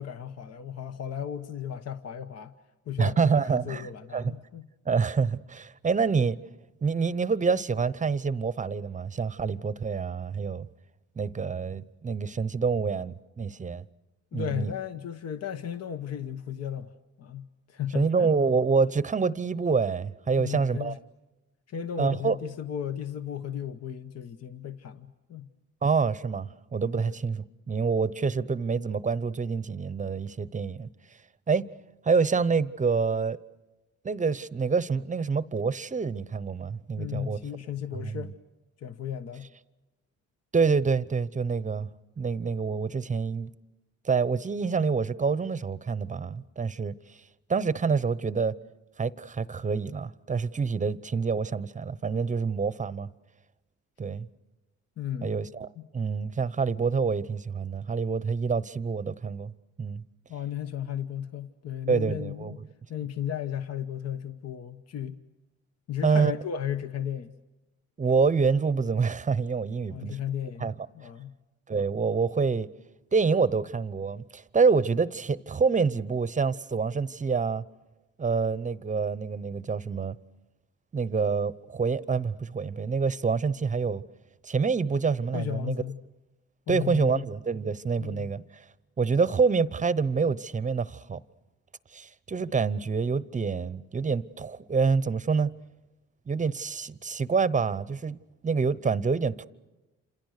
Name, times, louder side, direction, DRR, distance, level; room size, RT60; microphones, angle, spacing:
voice 1, 0.0-2.5 2.9-4.6 14.3-16.9 17.2-18.3 20.4-21.0 21.7-25.5 27.0-27.1 37.0-38.3 38.8-39.5 55.0-55.3 55.8-55.9 60.3-62.6 62.9-65.2 65.9-67.3 69.9-71.3 85.3-86.0 86.7-87.2 88.0-88.3, left 9 dB, 55° left, 1.1 m, -35 dB
voice 2, 3.0-4.3 4.9-6.4 6.8-10.7 11.2-13.8 14.3-14.7 17.9-21.0 22.0-22.4 25.8-30.9 31.5-31.7 32.0-33.4 34.0-37.4 37.9-38.3 40.5-41.9 42.2-43.5 44.0-46.9 47.5-48.5 49.0-53.1 54.0-54.3 55.2-59.5 59.8-60.0 61.9-62.5 66.0-66.3 68.0-70.2 70.6-70.9 71.7-72.7 73.1-77.6 78.2-80.1 80.9-84.0 84.4-85.8 86.7-88.4 89.0-91.2 91.9-95.5 96.3-98.2 98.4-99.5, right 5 dB, 25° right, 0.8 m, -27 dB
28.5 x 27.0 x 6.6 m
cardioid pair, 90°, 30 cm